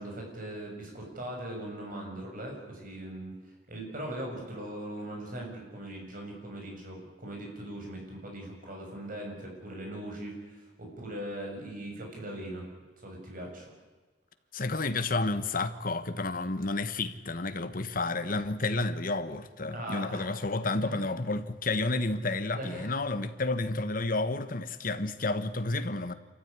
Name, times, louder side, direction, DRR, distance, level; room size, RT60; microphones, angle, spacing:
voice 1, 0.0-12.7 13.0-13.7 19.7-20.3 20.8-21.1 22.5-23.0, right 1 dB, 50° right, 7.3 m, -40 dB
voice 2, 14.5-26.1, left 2 dB, 50° left, 1.4 m, -31 dB
27.0 x 14.5 x 9.7 m
head